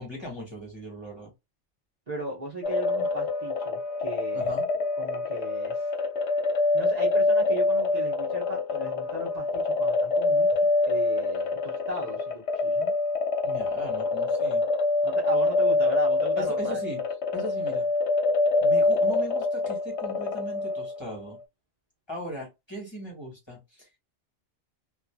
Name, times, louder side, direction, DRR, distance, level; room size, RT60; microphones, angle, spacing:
voice 1, 0.0-1.3 4.3-4.7 13.4-14.7 16.3-17.0 17.3-17.9 18.6-21.4 22.1-23.9, equal, 25° left, 1.4 m, -38 dB
voice 2, 2.1-4.6 5.0-5.9 6.7-10.5 10.9-13.0 15.0-16.8, right 1 dB, 35° right, 1.0 m, -37 dB
sound 1, 2.6-21.1, left 3 dB, 75° left, 0.9 m, -25 dB
2.6 x 2.6 x 2.2 m
omnidirectional pair, 1.2 m